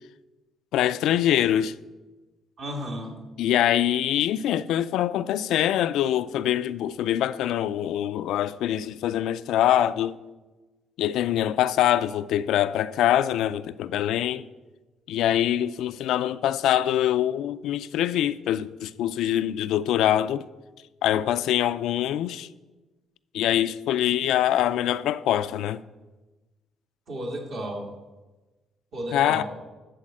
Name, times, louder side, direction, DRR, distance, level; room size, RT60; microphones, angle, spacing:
voice 1, 0.7-1.8 3.4-10.2 11.0-14.5 15.1-20.5 21.0-22.5 23.3-25.8 29.1-29.4, left 11 dB, 85° left, 0.4 m, -24 dB
voice 2, 2.6-3.1 27.1-27.9 28.9-29.4, equal, 65° right, 2.2 m, -33 dB
12.5 x 4.2 x 7.7 m
cardioid pair, 115°, 0 cm